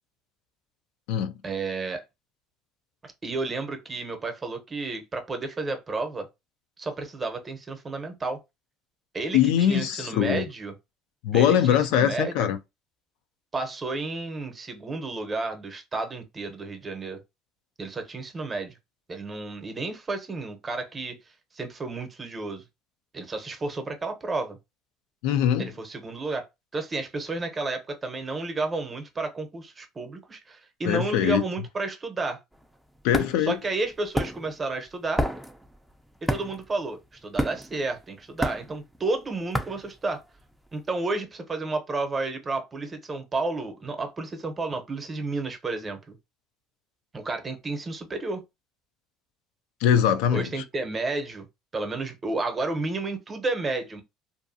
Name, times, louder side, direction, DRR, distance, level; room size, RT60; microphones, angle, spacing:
voice 1, 1.4-2.0 3.0-6.3 6.8-8.4 9.1-10.7 11.3-12.5 13.5-17.2 17.8-18.7 19.1-21.2 21.5-22.6 23.1-24.6 25.6-26.4 26.7-32.4 33.4-35.2 36.2-40.2 40.7-46.2 47.1-48.4 50.3-51.5 51.7-54.0, right 3 dB, 25° right, 0.8 m, -31 dB
voice 2, 9.3-10.5 11.2-12.6 25.2-25.7 30.8-31.4 33.0-33.5 49.8-50.5, left 9 dB, 80° left, 0.4 m, -22 dB
sound 1, 32.5-40.7, equal, ahead, 0.5 m, -31 dB
2.6 x 2.3 x 2.6 m
supercardioid pair, 100°, 0 cm